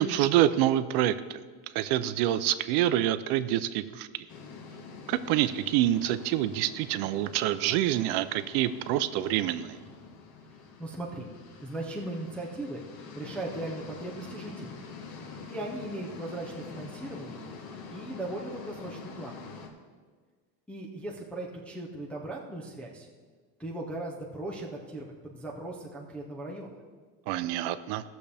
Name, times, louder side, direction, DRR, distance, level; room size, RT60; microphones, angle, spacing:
voice 1, 0.0-1.4 1.7-4.1 5.1-9.8 27.3-28.0, right 13 dB, 60° right, 13 dB, 0.5 m, -26 dB
sound 1, 4.3-19.7, left 4 dB, 50° left, 1.2 m, -46 dB
voice 2, 10.8-11.3 11.6-12.8 13.2-14.8 15.5-17.4 17.9-19.4 20.7-23.1 23.6-26.7, right 2 dB, 5° left, -3 dB, 0.3 m, -38 dB
16.0 x 6.8 x 3.4 m, 1.5 s
cardioid pair, 175°, 46 cm